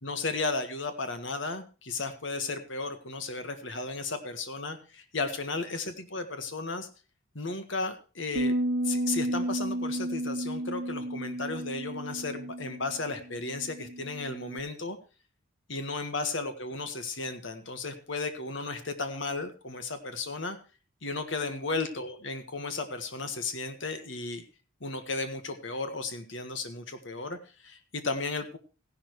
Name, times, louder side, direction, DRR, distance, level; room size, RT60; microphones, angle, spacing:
voice 1, 0.0-6.9 7.3-8.5 8.8-15.0 15.7-20.6 21.0-24.4 24.8-28.6, left 3 dB, 65° left, 8 dB, 1.5 m, -34 dB
sound 1, 8.4-14.6, right 1 dB, 75° right, 1.2 m, -32 dB
15.5 x 11.5 x 3.1 m, 0.34 s
head